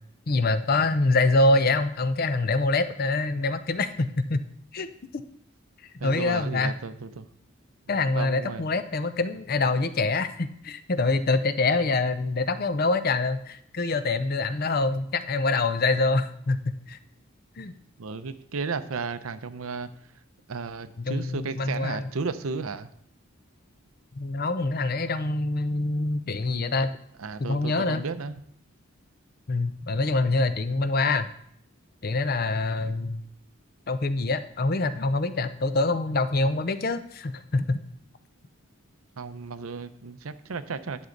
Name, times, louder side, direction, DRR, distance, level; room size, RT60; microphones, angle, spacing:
voice 1, 0.3-4.4 4.7-4.9 5.1-5.2 6.0-6.8 7.9-17.0 17.6-17.7 21.0-22.1 24.2-26.9 27.4-28.1 29.5-31.3 32.0-33.2 33.9-37.8, left 3 dB, 45° left, 11 dB, 0.6 m, -25 dB
voice 2, 6.0-7.3 8.0-8.6 18.0-19.9 20.5-22.9 27.2-28.3 39.2-41.1, right 4 dB, 80° right, 12 dB, 0.6 m, -34 dB
11.0 x 7.0 x 3.9 m, 0.70 s
head